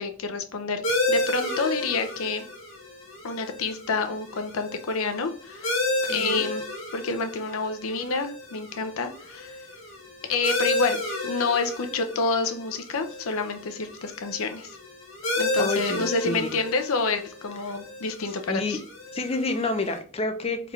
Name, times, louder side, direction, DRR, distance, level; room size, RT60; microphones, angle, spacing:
voice 1, 0.0-2.4 3.2-5.7 6.1-6.6 6.9-9.6 10.3-14.8 15.4-18.8, left 4 dB, 80° left, 7 dB, 0.6 m, -28 dB
sound 1, 0.8-20.0, left 1 dB, 65° left, 1.2 m, -32 dB
voice 2, 6.0-6.4 15.6-16.5 18.5-18.8 19.1-20.7, left 3 dB, 30° left, 6 dB, 0.5 m, -29 dB
3.5 x 3.5 x 3.1 m, 0.40 s
head